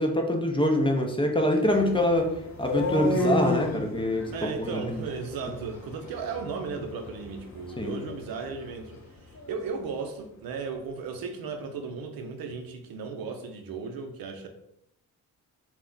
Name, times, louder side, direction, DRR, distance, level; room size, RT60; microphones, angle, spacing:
voice 1, 0.0-2.3 2.6-4.3 4.6-5.0 7.8-8.0, left 1 dB, 15° left, 0.5 m, -25 dB
sound 1, 1.6-9.6, left 1 dB, 45° left, 0.8 m, -34 dB
voice 2, 4.3-14.5, right 5 dB, 65° right, 0.6 m, -36 dB
2.4 x 2.1 x 3.7 m
supercardioid pair, 55°, 38 cm